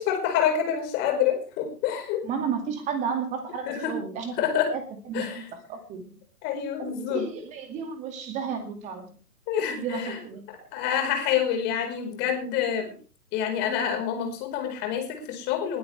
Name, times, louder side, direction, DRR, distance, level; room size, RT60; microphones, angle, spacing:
voice 1, 0.0-2.2 3.6-3.9 4.4-4.7 5.1-5.5 6.4-7.2 9.5-10.2 10.5-12.9 13.3-15.8, left 8 dB, 20° left, 4 dB, 4.8 m, -27 dB
voice 2, 2.2-4.3 4.7-4.8 5.1-6.1 6.9-9.1 9.8-10.7, right 6 dB, 15° right, 6 dB, 2.2 m, -32 dB
21.0 x 12.0 x 3.4 m, 0.36 s
figure-of-eight pair, 125°, 46 cm